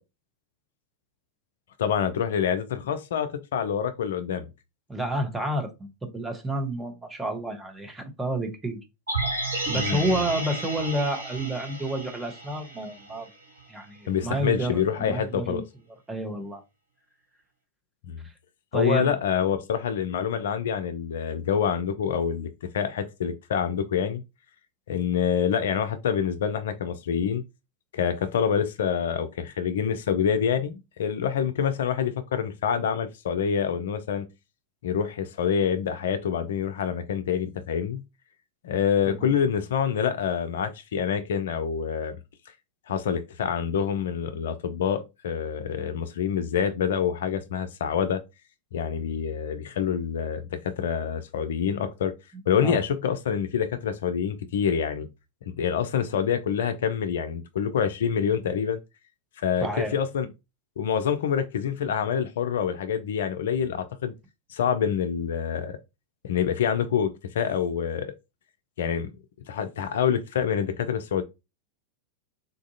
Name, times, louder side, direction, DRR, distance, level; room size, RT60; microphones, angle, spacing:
voice 1, 1.8-4.5 9.7-10.2 14.1-15.6 18.0-18.2 18.7-22.5 22.7-24.2 24.9-27.4 27.9-34.3 34.8-38.0 38.6-42.2 42.9-48.2 48.7-52.1 52.5-55.1 55.4-58.8 59.4-60.3 60.8-64.1 64.5-65.8 66.2-68.1 68.8-69.1 69.5-71.2, left 8 dB, 60° left, 0.4 m, -26 dB
voice 2, 4.9-8.8 9.7-13.3 13.7-15.6 16.1-16.6 18.7-19.1 39.1-39.3 52.6-52.8 59.6-60.0, right 1 dB, 10° right, 0.8 m, -30 dB
sound 1, 9.1-13.3 13.6-13.7, right 2 dB, 75° right, 1.5 m, -32 dB
3.8 x 2.4 x 2.6 m
figure-of-eight pair, 90°, 0 cm